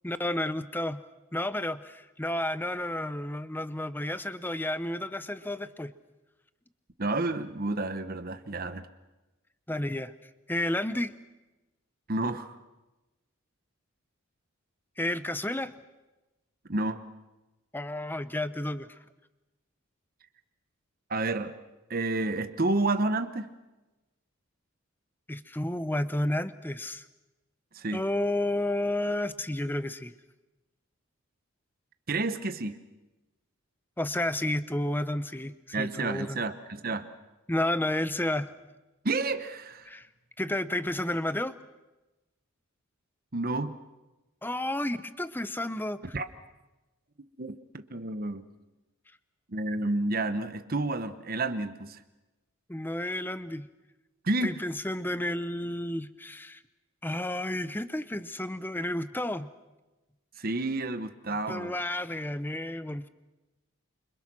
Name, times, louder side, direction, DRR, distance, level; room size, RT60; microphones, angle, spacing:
voice 1, 0.0-1.0 1.3-5.9 9.7-10.1 10.5-11.1 15.0-15.7 17.7-18.9 25.3-27.0 27.9-30.1 34.0-36.4 37.5-38.5 39.9-40.1 40.4-41.5 44.4-46.0 52.7-53.7 54.4-56.6 57.0-59.5 61.5-63.1, left 1 dB, 10° left, 13 dB, 0.8 m, -31 dB
voice 2, 7.0-8.9 12.1-12.6 16.7-17.0 21.1-21.6 21.9-23.5 27.7-28.0 32.1-32.8 35.7-37.1 39.0-39.9 43.3-43.7 46.1-46.2 47.4-48.4 49.5-52.0 54.2-54.6 60.4-61.7, right 2 dB, 40° right, 10 dB, 1.0 m, -30 dB
28.0 x 26.0 x 6.1 m, 1.1 s
head